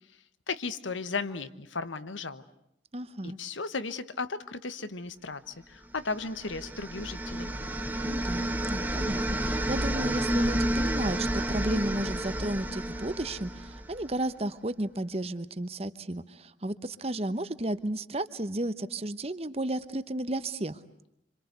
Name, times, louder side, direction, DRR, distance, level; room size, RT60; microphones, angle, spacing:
voice 1, 0.5-2.4 3.2-7.5, left 4 dB, 85° left, 13 dB, 1.3 m, -35 dB
voice 2, 2.9-3.4 8.0-20.8, right 1 dB, 30° right, 13 dB, 1.0 m, -33 dB
sound 1, 6.2-14.1, right 1 dB, 10° right, 1.5 m, -31 dB
26.5 x 26.5 x 8.1 m, 0.76 s
head